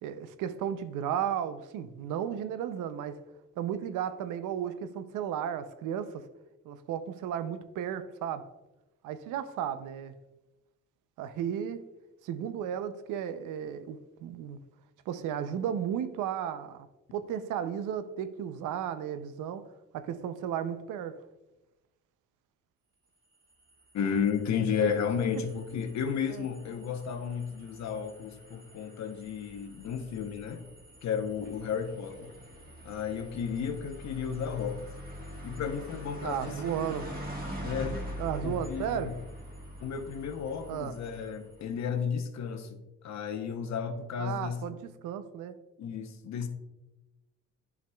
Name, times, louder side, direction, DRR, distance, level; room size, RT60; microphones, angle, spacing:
voice 1, 0.0-3.2 3.6-6.2 6.6-8.4 9.0-10.1 11.2-11.8 12.2-14.6 15.1-16.9 17.1-19.6 19.9-21.2 24.8-24.9 25.3-25.4 26.3-26.5 36.2-37.1 38.2-39.2 40.7-40.9 44.2-45.5, right 9 dB, 90° right, 0.6 m, -34 dB
sound 1, 23.3-41.8, equal, 30° right, 1.9 m, -44 dB
voice 2, 23.9-30.6 31.0-32.3 32.8-34.9 35.4-36.6 37.6-38.0 38.4-39.2 39.8-42.8 43.0-44.6 45.8-46.5, left 7 dB, 65° left, 0.9 m, -33 dB
10.5 x 4.8 x 2.3 m
cardioid pair, 90°, 30 cm